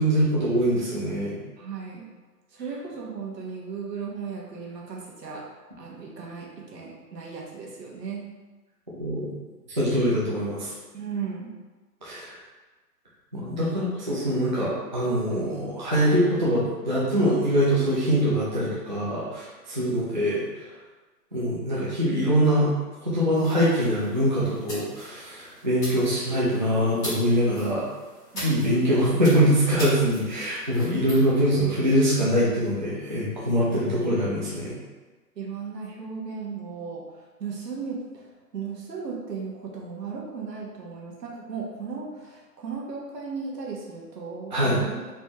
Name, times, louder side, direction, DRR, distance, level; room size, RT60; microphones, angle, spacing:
voice 1, 0.0-1.4 9.0-9.3 9.7-10.7 12.0-12.4 13.3-20.4 21.3-22.7 23.0-27.9 28.4-34.7 44.5-44.8, equal, 30° right, -8 dB, 0.5 m, -23 dB
voice 2, 1.6-2.1 2.5-5.4 5.8-8.3 10.9-11.5 15.3-15.5 28.3-29.1 33.7-34.5 35.3-37.0 37.4-45.0, right 5 dB, 80° right, -2 dB, 1.4 m, -36 dB
sound 1, 23.3-31.2, equal, 10° left, 1.5 m, -41 dB
4.2 x 3.6 x 2.9 m, 1.3 s
hypercardioid pair, 175°, 49 cm